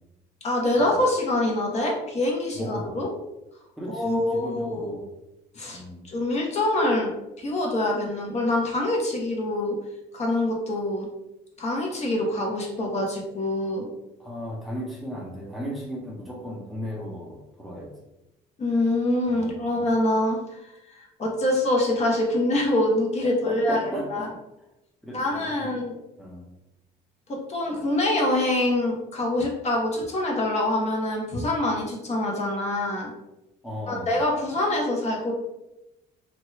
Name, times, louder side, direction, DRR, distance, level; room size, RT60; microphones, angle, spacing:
voice 1, 0.4-3.1 3.9-4.9 5.5-7.1 7.4-9.7 10.1-11.1 11.6-13.9 18.6-20.7 21.2-24.3 25.1-25.9 27.3-33.1 33.9-35.3, left 1 dB, 40° left, -1 dB, 0.8 m, -25 dB
voice 2, 2.6-3.0 3.8-5.0 5.7-6.1 14.2-17.9 19.3-19.8 23.2-24.3 25.0-25.7 26.2-26.4 33.6-34.2, equal, ahead, -3 dB, 0.7 m, -36 dB
2.9 x 2.3 x 3.0 m, 0.94 s
cardioid pair, 110°, 17 cm